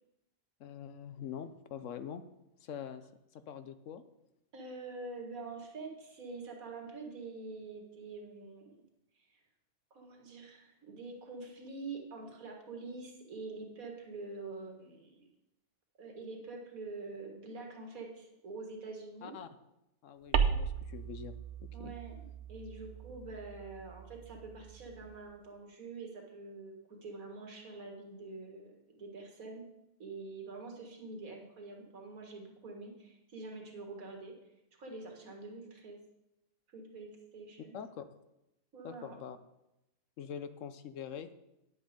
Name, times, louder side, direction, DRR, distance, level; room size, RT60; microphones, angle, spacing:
voice 1, 0.6-2.2 2.6-3.1 3.3-4.0 19.2-19.5 20.0-21.3 21.6-21.9 37.7-38.0 38.8-39.4 40.2-41.3, left 8 dB, 70° left, 11 dB, 0.9 m, -44 dB
voice 2, 4.5-8.8 9.2-9.4 9.9-15.3 16.0-19.4 21.7-29.6 30.0-34.4 34.8-36.0 36.7-37.8 38.7-39.2, right 3 dB, 80° right, 2 dB, 2.1 m, -46 dB
sound 1, 20.3-25.2, right 6 dB, 60° right, 0.9 m, -36 dB
9.8 x 7.9 x 5.1 m, 0.90 s
omnidirectional pair, 1.5 m